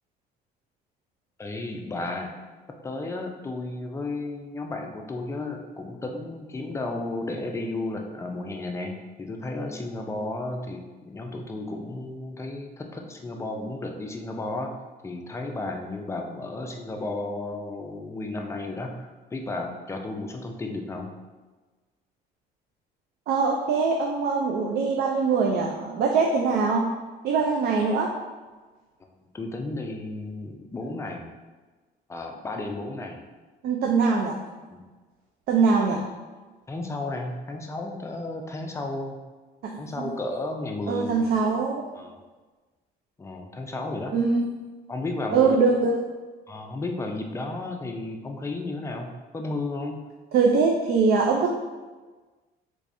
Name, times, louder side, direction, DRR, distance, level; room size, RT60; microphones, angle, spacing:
voice 1, 1.4-2.3 2.8-14.7 15.0-21.1 29.3-31.3 32.1-33.2 34.7-34.8 36.7-39.2 39.8-41.6 41.9-42.2 43.2-44.2 44.9-45.6 46.5-49.1 49.3-50.0, left 2 dB, 15° left, 3 dB, 0.4 m, -33 dB
voice 2, 23.3-26.9 27.2-28.1 33.6-34.4 35.5-36.0 39.6-40.1 40.9-41.9 44.1-44.5 45.3-46.0 50.3-51.5, right 4 dB, 65° right, 0 dB, 0.4 m, -22 dB
3.4 x 3.2 x 2.5 m, 1.3 s
cardioid pair, 110°, 17 cm